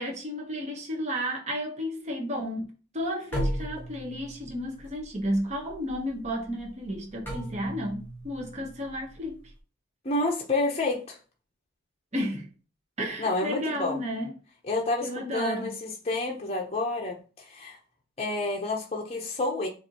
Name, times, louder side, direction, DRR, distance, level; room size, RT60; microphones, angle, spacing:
voice 1, 0.0-2.6 2.9-9.4 12.1-12.5 13.0-14.3 15.0-15.7, equal, 30° right, 1.0 m, -32 dB
sound 1, 3.3-9.6, right 1 dB, 10° left, 1.1 m, -37 dB
voice 2, 10.0-11.2 13.2-14.0 14.6-17.8 18.2-19.7, left 2 dB, 30° left, 0.7 m, -29 dB
6.8 x 2.7 x 2.9 m
head